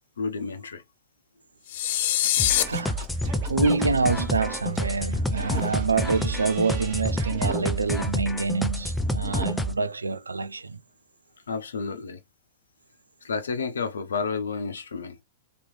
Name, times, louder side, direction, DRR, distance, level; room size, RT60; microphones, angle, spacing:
voice 1, 0.2-0.8 11.5-12.2 13.2-15.2, left 5 dB, 70° left, 0.8 m, -31 dB
sound 1, 1.7-2.6, left 13 dB, 50° left, 0.4 m, -23 dB
Singing / Scratching (performance technique), 2.2-7.5, right 6 dB, 55° right, 1.2 m, -42 dB
sound 2, 2.4-9.7, left 1 dB, 5° left, 0.6 m, -29 dB
voice 2, 2.6-10.8, right 4 dB, 80° right, 0.4 m, -26 dB
3.3 x 3.1 x 3.2 m
figure-of-eight pair, 100°, 0 cm